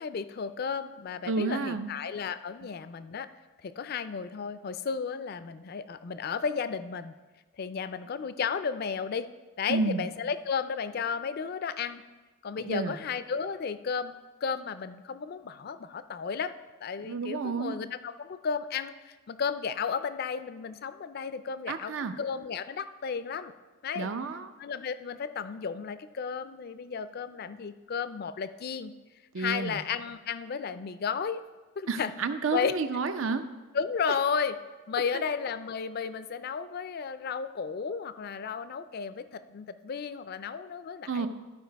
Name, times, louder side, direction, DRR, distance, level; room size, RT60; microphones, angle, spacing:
voice 1, 0.0-3.3 3.6-7.1 7.6-9.3 9.6-12.0 12.4-14.1 14.4-16.5 16.8-23.5 23.8-24.1 24.6-28.9 29.4-31.4 31.8-32.1 32.5-32.7 33.7-34.6 34.9-41.3, left 6 dB, 50° left, 13 dB, 0.4 m, -33 dB
voice 2, 1.3-1.9 9.7-10.1 12.6-12.9 17.0-17.8 21.7-22.1 23.9-24.5 29.3-29.8 31.9-33.4 35.1-35.2 41.1-41.3, right 4 dB, 75° right, 9 dB, 0.6 m, -30 dB
13.0 x 4.7 x 4.6 m, 1.2 s
head